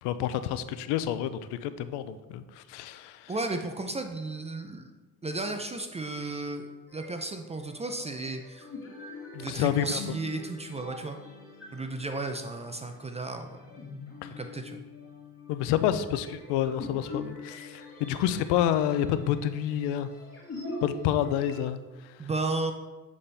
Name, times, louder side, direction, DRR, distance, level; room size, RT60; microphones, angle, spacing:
voice 1, 0.0-3.3 9.3-10.0 14.2-14.3 15.5-20.1 20.8-21.8, left 10 dB, 85° left, 12 dB, 0.5 m, -28 dB
voice 2, 3.3-4.9 5.2-8.7 9.4-11.2 11.7-13.6 14.4-14.8 22.2-22.7, right 2 dB, 15° right, 5 dB, 0.4 m, -34 dB
sound 1, 6.9-21.6, left 2 dB, 35° left, 2.0 m, -44 dB
7.1 x 4.2 x 3.3 m, 1.2 s
cardioid pair, 95°, 40 cm